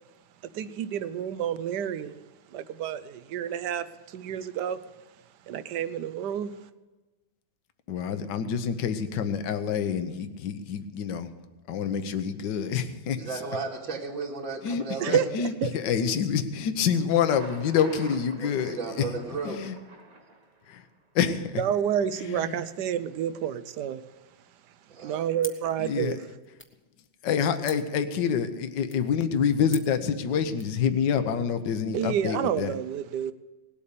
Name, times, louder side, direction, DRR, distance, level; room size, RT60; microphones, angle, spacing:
voice 1, 0.5-2.2 2.5-4.8 5.5-6.5 15.0-15.7 21.6-24.0 25.0-26.2 31.9-33.3, right 9 dB, 70° right, 1.2 m, -29 dB
voice 2, 7.9-11.3 11.7-13.4 14.6-19.1 19.4-19.8 20.7-20.8 21.1-21.6 22.3-22.6 25.8-26.2 27.2-32.7, left 7 dB, 70° left, 1.6 m, -27 dB
voice 3, 13.2-15.2 18.4-19.6 24.9-25.2, right 4 dB, 90° right, 3.3 m, -34 dB
Thunder, 16.9-20.9, right 3 dB, 45° right, 2.2 m, -47 dB
sound 1, 25.4-30.8, left 1 dB, 10° left, 0.7 m, -48 dB
19.0 x 8.5 x 6.7 m
omnidirectional pair, 2.1 m